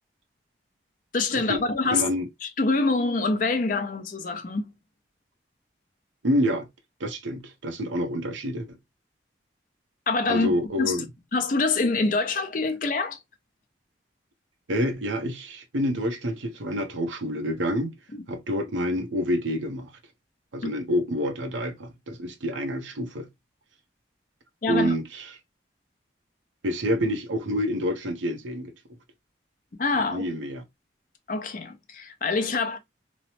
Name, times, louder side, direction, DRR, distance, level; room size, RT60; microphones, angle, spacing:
voice 1, 1.1-2.1 2.4-4.7 10.1-10.5 10.8-11.0 11.3-13.2 18.1-18.2 20.6-20.7 24.6-24.9 29.8-30.3 31.3-32.8, left 3 dB, 45° left, 0.5 m, -25 dB
voice 2, 1.9-2.3 6.2-6.7 7.0-8.7 10.3-11.1 14.7-17.9 18.3-19.9 20.5-23.3 24.7-25.3 26.6-28.7 30.1-30.6, equal, 85° right, 0.7 m, -27 dB
3.0 x 2.0 x 2.7 m
head